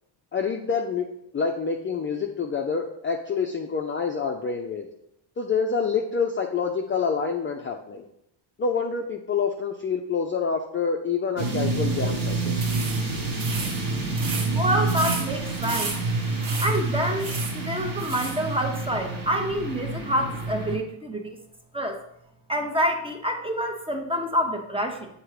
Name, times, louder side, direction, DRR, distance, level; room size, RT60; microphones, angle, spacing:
voice 1, 0.3-4.9 5.4-8.1 8.6-12.6, left 5 dB, 25° left, 2 dB, 0.4 m, -27 dB
sound 1, 11.4-20.8, right 3 dB, 45° right, 1.4 m, -28 dB
sound 2, 12.5-18.4, right 4 dB, 65° right, 1.4 m, -35 dB
voice 2, 14.5-15.9 16.6-17.3 17.5-21.3 21.7-22.0 22.5-25.1, equal, 10° right, 3 dB, 0.7 m, -27 dB
7.5 x 2.9 x 4.8 m, 0.76 s
cardioid pair, 120°, 48 cm